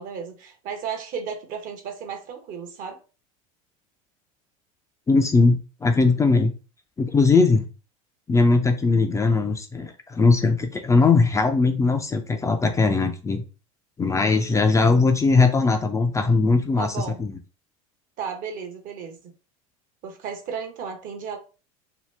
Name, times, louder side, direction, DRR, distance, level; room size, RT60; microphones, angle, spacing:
voice 1, 0.0-3.0 16.8-17.2 18.2-19.2 20.0-21.4, right 6 dB, 50° right, 0.9 m, -34 dB
voice 2, 5.1-6.5 7.0-7.6 8.3-13.4 14.0-17.3, left 3 dB, 15° left, 0.4 m, -20 dB
2.8 x 2.3 x 3.3 m
hypercardioid pair, 85°, 18 cm